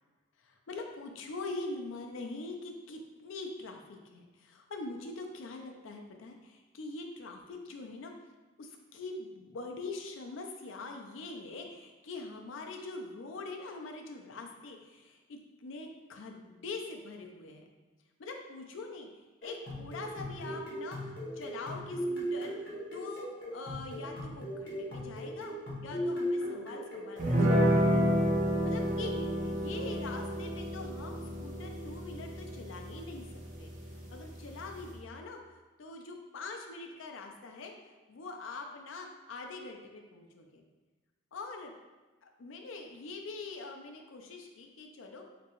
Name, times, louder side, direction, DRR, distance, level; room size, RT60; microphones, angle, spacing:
voice 1, 0.4-8.1 8.6-17.7 18.2-25.5 25.8-28.2 28.6-33.3 33.6-35.4 35.8-37.8 38.1-40.6 41.3-41.7 42.2-45.2, left 3 dB, 90° left, 3 dB, 0.4 m, -43 dB
sound 1, 19.4-27.9, equal, 60° left, 1.0 m, -38 dB
sound 2, 27.2-35.0, equal, 40° right, 0.6 m, -31 dB
3.5 x 2.9 x 2.9 m, 1.2 s
head